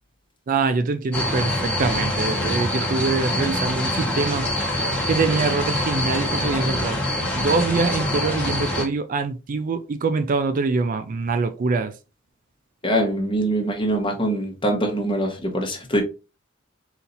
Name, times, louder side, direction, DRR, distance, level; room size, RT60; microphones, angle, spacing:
voice 1, 0.5-4.5 5.1-7.0 7.4-12.0, right 4 dB, 40° right, 0.4 m, -24 dB
sound 1, 1.1-8.9, left 1 dB, 5° left, 1.2 m, -25 dB
voice 2, 12.8-16.0, right 1 dB, 25° left, 1.2 m, -23 dB
4.1 x 2.8 x 3.9 m
head